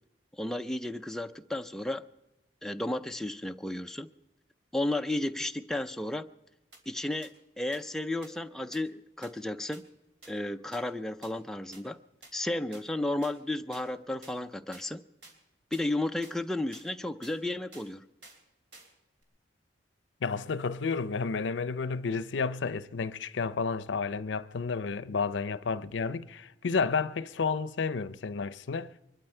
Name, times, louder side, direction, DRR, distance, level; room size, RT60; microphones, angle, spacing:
voice 1, 0.4-2.1 2.6-4.1 4.7-6.3 6.9-9.8 10.3-12.0 12.3-15.0 15.7-18.1, left 1 dB, 5° left, 0.4 m, -33 dB
sound 1, 6.7-6.8 7.2-7.3 7.7-7.8 8.2-8.3 8.7-8.8 9.2-9.3 9.7-9.8 10.2-10.3 10.7-10.8 11.2-11.3 11.7-11.8 12.2-12.3 12.7-12.8 13.2-13.3 13.7-13.8 14.2-14.3 14.7-14.8 15.2-15.4 15.7-15.9 16.2-16.4 16.7-16.9 17.2-17.4 17.7-17.9 18.2-18.4 18.7-18.9 19.2-19.3, right 2 dB, 75° right, 3.0 m, -51 dB
voice 2, 20.2-28.9, left 5 dB, 85° left, 0.5 m, -31 dB
23.0 x 12.5 x 4.4 m
head